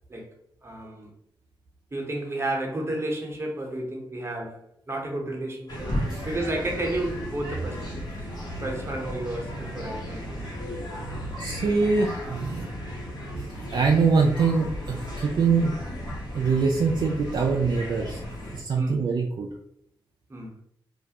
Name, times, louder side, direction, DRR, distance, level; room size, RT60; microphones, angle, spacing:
voice 1, 0.6-1.1 1.9-5.9 6.2-7.9 8.6-10.5 18.7-19.0 20.3-20.6, right 1 dB, 25° right, 0 dB, 0.9 m, -32 dB
sound 1, 5.7-18.6, equal, 45° left, 1.1 m, -35 dB
voice 2, 11.4-12.7 13.3-15.7 16.3-18.2 18.5-19.5, right 4 dB, 50° right, 0 dB, 0.3 m, -24 dB
2.3 x 2.1 x 2.8 m, 0.72 s
supercardioid pair, 50°, 9 cm